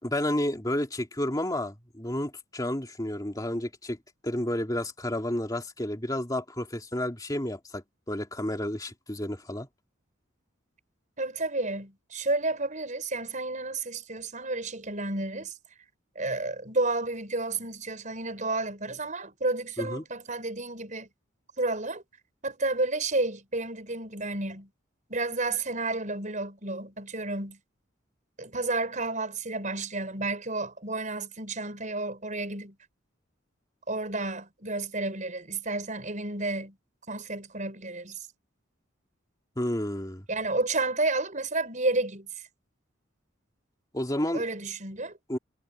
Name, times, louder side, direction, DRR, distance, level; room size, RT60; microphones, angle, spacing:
voice 1, 0.0-4.0 4.2-9.7 19.8-20.0 39.6-40.3 43.9-44.4 45.3-45.4, left 1 dB, 20° left, 2.5 m, -31 dB
voice 2, 11.2-15.5 16.1-21.1 21.6-22.0 22.4-24.7 25.1-27.6 28.4-32.7 33.9-36.7 37.1-38.2 40.3-42.3 44.3-45.1, right 2 dB, 40° right, 6.5 m, -31 dB
head